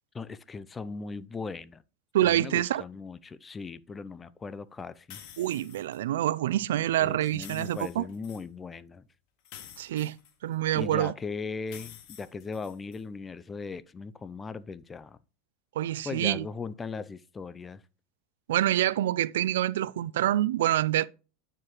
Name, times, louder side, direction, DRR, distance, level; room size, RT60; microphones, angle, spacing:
voice 1, 0.1-1.8 2.2-5.2 7.0-9.1 10.7-15.2 16.0-17.8, left 4 dB, 20° left, 0.4 m, -38 dB
voice 2, 2.1-2.8 5.4-8.0 9.8-11.1 15.8-16.5 18.5-21.1, right 13 dB, 85° right, 0.3 m, -26 dB
sound 1, 5.1-6.0 7.3-8.5 9.5-10.8 11.7-13.0, left 10 dB, 60° left, 1.2 m, -49 dB
9.5 x 4.6 x 3.1 m
supercardioid pair, 120°, 0 cm